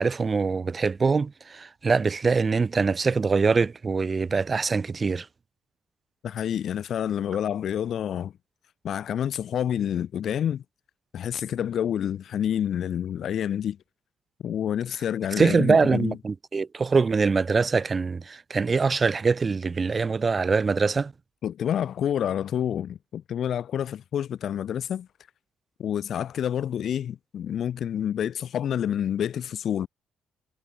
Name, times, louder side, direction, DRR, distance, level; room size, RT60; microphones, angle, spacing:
voice 1, 0.0-5.3 15.4-21.1, right 4 dB, 35° right, 0.3 m, -23 dB
voice 2, 6.2-8.3 8.8-10.6 11.1-13.8 14.4-16.2 21.4-25.1 25.8-29.9, left 9 dB, 65° left, 0.4 m, -28 dB
cardioid pair, 90°, 0 cm